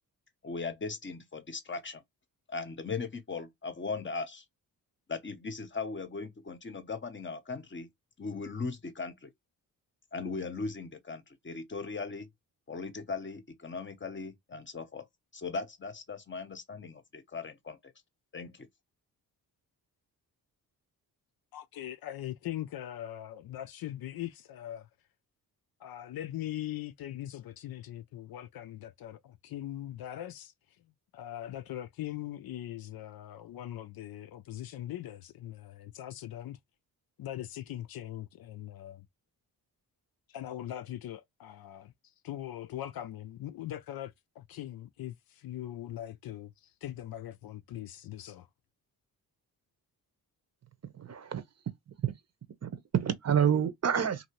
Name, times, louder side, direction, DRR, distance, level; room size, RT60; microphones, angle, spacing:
voice 1, 0.4-2.0 2.5-4.4 5.1-7.9 8.2-9.3 10.1-12.3 12.7-15.1 15.3-17.9 18.3-18.7, left 4 dB, 30° left, 0.8 m, -38 dB
voice 2, 21.5-24.9 25.8-30.5 31.1-36.6 37.2-39.1 40.3-41.9 42.2-46.5 46.8-48.5, left 12 dB, 65° left, 0.5 m, -41 dB
voice 3, 50.9-51.4 52.0-52.1 52.6-54.3, right 8 dB, 40° right, 0.7 m, -28 dB
2.8 x 2.7 x 3.0 m
cardioid pair, 65°, 39 cm